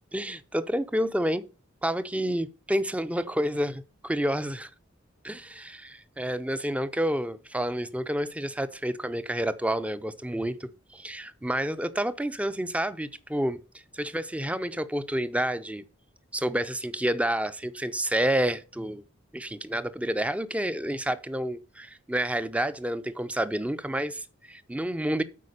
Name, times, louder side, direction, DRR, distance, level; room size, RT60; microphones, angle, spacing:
voice 1, 0.1-1.4 1.8-4.7 5.2-13.6 13.9-15.8 16.3-19.0 19.3-25.2, right 1 dB, 5° right, 0.5 m, -29 dB
8.4 x 4.6 x 6.5 m
head